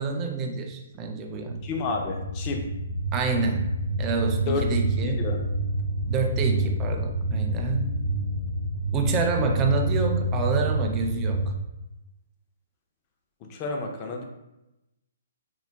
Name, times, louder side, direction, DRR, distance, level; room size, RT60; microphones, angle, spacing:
voice 1, 0.0-1.6 3.1-3.7 4.0-5.3 6.1-8.0 8.9-11.5, right 4 dB, 25° right, 4 dB, 0.4 m, -28 dB
sound 1, 1.5-11.5, right 1 dB, 85° left, 1.0 m, -28 dB
voice 2, 1.6-2.6 4.5-4.7 5.0-5.4 13.5-14.2, left 3 dB, 30° left, 2 dB, 0.5 m, -30 dB
3.8 x 2.1 x 3.4 m, 0.92 s
figure-of-eight pair, 135°, 0 cm